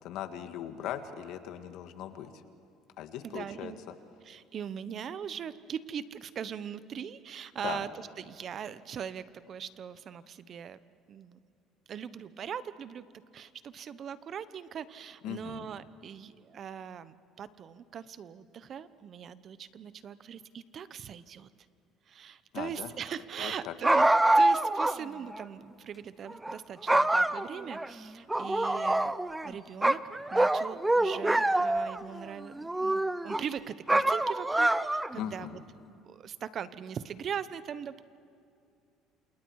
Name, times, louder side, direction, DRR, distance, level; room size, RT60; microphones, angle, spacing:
voice 1, 0.0-2.3 3.0-3.7 7.6-7.8 15.2-15.7 22.5-22.9 23.4-23.7 35.2-35.6, left 10 dB, 70° left, 8 dB, 1.8 m, -39 dB
voice 2, 3.2-3.8 4.2-10.8 11.1-11.4 11.9-13.1 13.3-21.5 22.1-29.1 29.4-30.0 30.3-35.6 35.9-38.0, right 8 dB, 45° right, 15 dB, 1.0 m, -40 dB
sound 1, 23.8-25.0 25.3-25.4 26.3-26.5 26.9-27.9 28.3-29.5 29.8-32.0 32.6-33.4 33.9-35.2, right 1 dB, 10° right, 0.7 m, -25 dB
28.5 x 28.0 x 4.8 m, 2.5 s
supercardioid pair, 100°, 0 cm